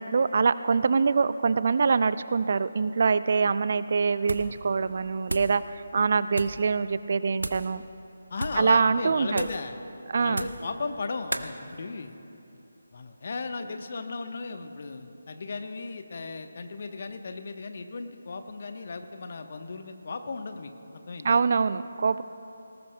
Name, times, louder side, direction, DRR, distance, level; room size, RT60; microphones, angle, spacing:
voice 1, 0.0-7.8 8.6-9.4 10.1-10.4 21.2-22.2, right 5 dB, 50° right, 15 dB, 0.3 m, -24 dB
sound 1, 4.2-4.6 4.9-5.6 6.3-6.6 7.4-7.7 8.3-8.7 9.3-9.7 10.3-10.7 11.3-11.5, right 1 dB, 80° right, 0.7 m, -35 dB
voice 2, 8.3-9.8 10.2-12.2 12.9-21.4, left 3 dB, 50° left, 7 dB, 0.9 m, -36 dB
19.5 x 18.5 x 2.2 m, 2.9 s
figure-of-eight pair, 155°, 0 cm